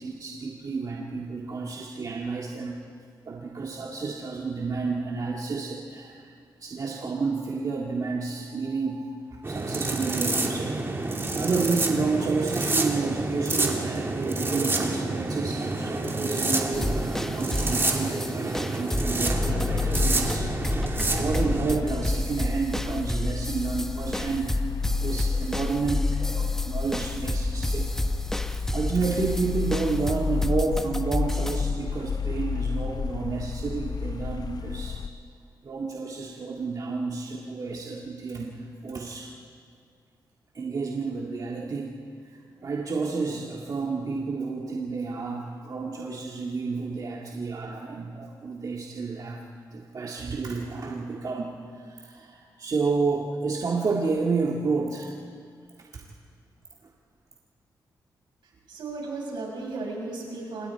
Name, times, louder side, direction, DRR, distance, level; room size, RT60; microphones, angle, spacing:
voice 1, 0.0-2.8 3.2-6.3 6.6-10.8 11.3-16.7 17.3-20.5 20.8-24.6 25.0-28.0 28.4-35.0 35.6-39.3 40.5-42.0 42.3-49.4 49.7-55.1 55.9-56.0, right 4 dB, 50° right, -1 dB, 1.9 m, -30 dB
sound 1, 9.4-21.7, right 2 dB, 30° right, 2.6 m, -28 dB
sound 2, 16.7-31.7, equal, 5° left, 1.1 m, -31 dB
sound 3, 19.3-35.1, left 5 dB, 55° left, 0.8 m, -31 dB
voice 2, 58.7-60.7, right 3 dB, 80° right, -1 dB, 6.0 m, -35 dB
27.0 x 21.0 x 4.6 m, 2.2 s
cardioid pair, 80°, 8 cm